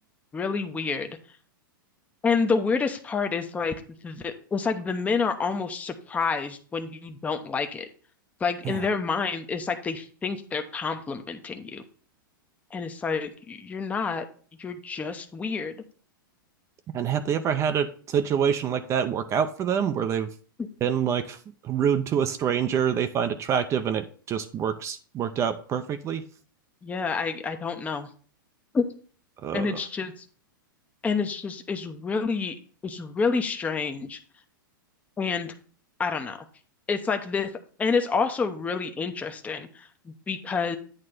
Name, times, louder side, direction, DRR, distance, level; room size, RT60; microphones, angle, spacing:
voice 1, 0.3-1.2 2.2-3.7 4.0-7.9 8.4-11.8 12.7-14.2 14.6-15.8 26.8-28.1 28.7-28.9 29.5-30.2 31.0-32.5 32.8-34.2 35.2-35.5 36.0-36.4 36.9-37.5 37.8-40.8, left 5 dB, 10° left, 6 dB, 0.7 m, -28 dB
voice 2, 16.9-20.3 20.8-21.4 21.6-26.2 29.4-29.8, right 8 dB, 25° right, 9 dB, 0.6 m, -26 dB
8.9 x 3.2 x 6.4 m, 0.42 s
hypercardioid pair, 125°, 12 cm